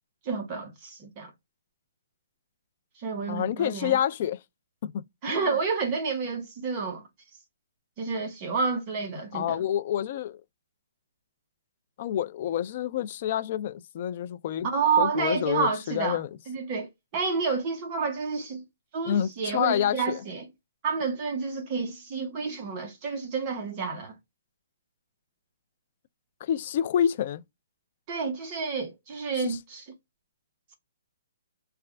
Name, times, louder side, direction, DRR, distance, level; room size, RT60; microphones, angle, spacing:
voice 1, 0.2-1.3 3.0-4.0 5.2-7.0 8.0-9.6 14.6-16.2 16.5-18.6 18.9-20.5 20.8-24.2 28.1-29.8, right 5 dB, 25° right, 0.9 m, -29 dB
voice 2, 3.3-4.4 4.8-4.9 5.3-5.5 9.3-10.4 12.0-14.7 15.0-16.3 19.1-20.2 26.4-27.4 29.3-29.6, left 10 dB, 40° left, 0.3 m, -28 dB
3.3 x 2.3 x 3.3 m
hypercardioid pair, 165°, 0 cm